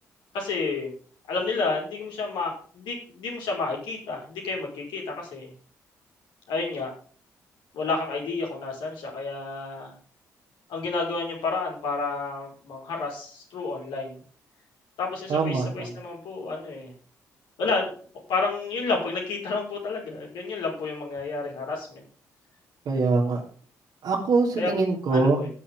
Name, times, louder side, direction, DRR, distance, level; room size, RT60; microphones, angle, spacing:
voice 1, 0.3-0.9 1.3-5.5 6.5-6.9 7.7-10.0 10.7-14.2 15.0-16.9 17.6-17.9 18.3-22.0 24.6-24.7 25.1-25.5, left 3 dB, 65° left, 0 dB, 5.2 m, -30 dB
voice 2, 15.3-15.7 22.9-23.4 24.0-25.4, right 3 dB, 60° right, -2 dB, 3.5 m, -23 dB
19.0 x 7.2 x 3.7 m, 0.44 s
figure-of-eight pair, 40°, 8 cm